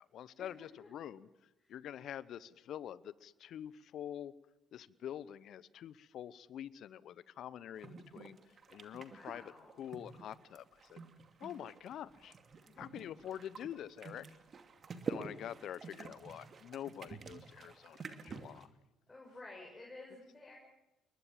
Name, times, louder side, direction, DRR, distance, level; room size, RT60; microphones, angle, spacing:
voice 1, 0.0-4.3 4.7-11.0 11.4-12.3 12.8-14.3 15.1-18.7, left 10 dB, 55° left, 19 dB, 0.8 m, -46 dB
sound 1, 7.7-18.6, right 5 dB, 40° right, 2.6 m, -48 dB
voice 2, 9.0-9.8 12.5-12.9 19.1-20.5, left 2 dB, 20° left, -2 dB, 7.2 m, -53 dB
29.0 x 21.5 x 7.5 m, 0.94 s
hypercardioid pair, 50°, 0 cm